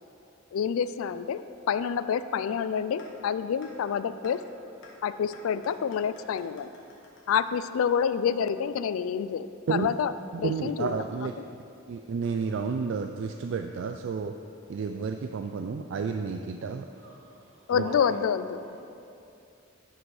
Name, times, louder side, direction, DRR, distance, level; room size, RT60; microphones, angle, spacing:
voice 1, 0.5-1.4 1.7-4.4 5.0-6.7 7.3-10.1 10.4-10.9 17.7-18.6, left 7 dB, 90° left, 13 dB, 0.3 m, -28 dB
sound 1, 3.0-3.1 3.6-3.7 4.2-4.3 4.8-4.9 5.3-8.3, left 4 dB, 60° left, 1.4 m, -53 dB
voice 2, 10.3-11.3 11.9-14.4 14.7-16.9 17.7-17.9, right 5 dB, 60° right, 6 dB, 0.3 m, -31 dB
voice 3, 17.0-18.2, right 2 dB, 80° right, -2 dB, 1.5 m, -42 dB
10.0 x 4.9 x 4.8 m, 2.7 s
head